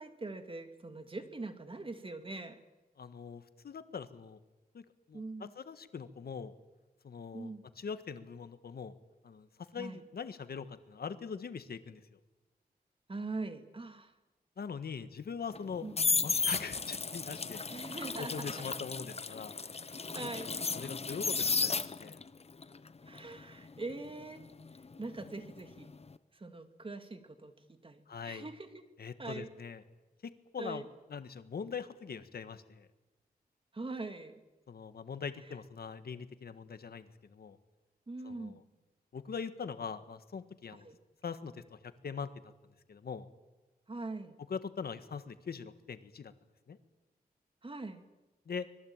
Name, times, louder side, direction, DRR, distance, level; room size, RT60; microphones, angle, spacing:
voice 1, 0.0-2.6 5.1-5.5 7.3-7.6 9.8-10.0 13.1-14.1 15.8-15.9 17.7-18.5 20.1-20.5 23.1-24.4 25.0-25.9 26.3-27.5 27.8-28.8 29.2-29.5 30.6-30.8 33.7-34.3 38.1-38.6 40.7-41.0 43.9-44.4 47.6-48.1, right 3 dB, 35° right, 8 dB, 2.5 m, -42 dB
voice 2, 3.0-4.4 4.7-4.8 5.1-6.5 7.0-7.5 7.8-8.9 9.2-9.5 9.7-12.0 14.6-15.9 16.2-17.6 18.2-19.6 20.5-22.2 28.1-28.4 29.0-29.8 30.2-30.8 31.1-32.9 34.7-37.6 38.2-38.6 39.1-40.9 41.2-42.3 42.9-43.3 44.5-46.3 46.7-46.8 48.5-48.7, left 6 dB, 75° left, 11 dB, 1.6 m, -42 dB
sound 1, 15.5-22.3 22.6-25.5 25.8-26.1, left 4 dB, 40° left, 1.0 m, -34 dB
25.0 x 21.0 x 8.9 m, 1.1 s
wide cardioid pair, 90°, 16 cm